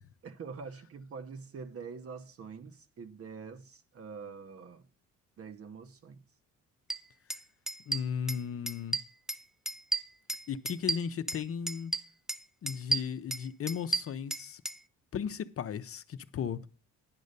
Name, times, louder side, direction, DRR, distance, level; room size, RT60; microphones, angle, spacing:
voice 1, 0.2-4.9 5.4-6.2, right 5 dB, 50° right, 1.0 m, -45 dB
sound 1, 6.9-7.0 7.3-7.4 7.7-8.4 8.7-9.4 9.7-11.4 11.7-12.4 12.7-14.8, right 2 dB, ahead, 0.5 m, -33 dB
voice 2, 7.9-9.0 10.5-11.9 12.6-14.6 15.1-16.7, left 7 dB, 50° left, 0.7 m, -36 dB
10.5 x 5.3 x 6.6 m
cardioid pair, 90°, 30 cm